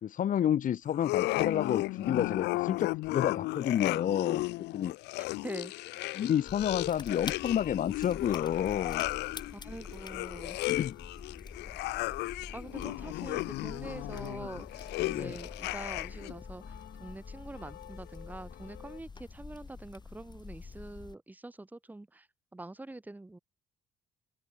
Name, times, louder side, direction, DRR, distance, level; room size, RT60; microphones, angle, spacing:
voice 1, 0.0-4.4 4.7-4.9 6.2-9.0 10.7-11.0 15.0-15.4, left 10 dB, 50° left, 2.3 m, -30 dB
sound 1, 0.9-16.3, left 20 dB, 90° left, 1.3 m, -35 dB
voice 2, 5.2-6.3 9.5-10.8 12.3-23.4, right 2 dB, 10° right, 2.2 m, -45 dB
sound 2, 6.5-21.2, left 4 dB, 25° left, 7.4 m, -46 dB
sound 3, 13.9-19.0, left 14 dB, 75° left, 3.8 m, -52 dB
cardioid pair, 110°, 17 cm